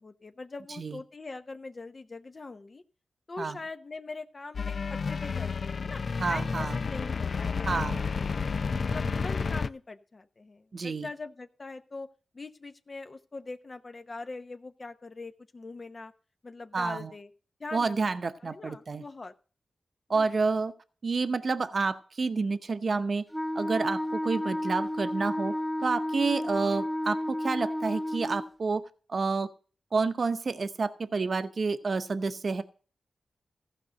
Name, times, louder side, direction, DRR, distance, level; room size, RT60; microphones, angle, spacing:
voice 1, 0.0-2.8 3.3-6.0 6.3-8.5 8.8-12.1 12.3-16.1 16.4-17.3 17.6-18.1 18.4-19.3 20.1-20.3, left 3 dB, 45° left, 8 dB, 0.9 m, -42 dB
sound 1, 4.5-9.7, left 5 dB, 60° left, 0.5 m, -31 dB
voice 2, 6.2-6.8 7.7-8.0 10.7-11.1 16.7-17.1 17.7-19.0 20.1-20.7 21.0-23.2 23.5-25.5 25.8-28.8 29.1-29.5 29.9-32.6, right 4 dB, 55° right, 11 dB, 0.8 m, -29 dB
Wind instrument woodwind instrument, 23.3-28.5, left 1 dB, ahead, 1.1 m, -32 dB
14.5 x 5.2 x 7.6 m, 0.39 s
cardioid pair, 55°, 0 cm